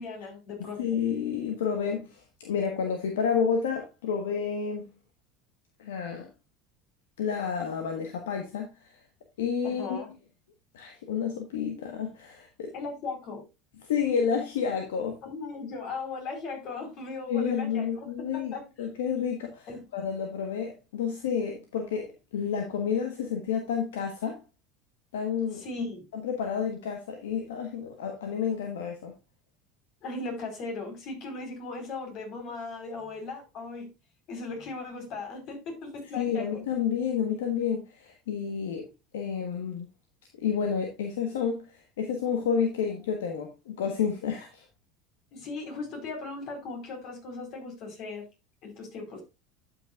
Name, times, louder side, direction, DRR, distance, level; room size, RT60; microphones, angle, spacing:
voice 1, 0.0-1.0 9.6-10.1 12.7-13.4 15.2-18.1 18.3-18.7 19.7-19.8 25.5-26.1 30.0-33.9 34.3-36.5 45.3-48.2 48.6-49.2, left 3 dB, 55° left, 4.1 m, -37 dB
voice 2, 0.6-4.9 5.8-6.3 7.2-9.0 9.4-10.0 10.7-12.7 13.8-15.2 17.3-24.4 25.1-25.6 26.1-29.1 36.2-38.9 39.1-39.9 40.4-44.6, left 7 dB, 80° left, 1.3 m, -30 dB
12.0 x 6.2 x 2.4 m
hypercardioid pair, 80°, 0 cm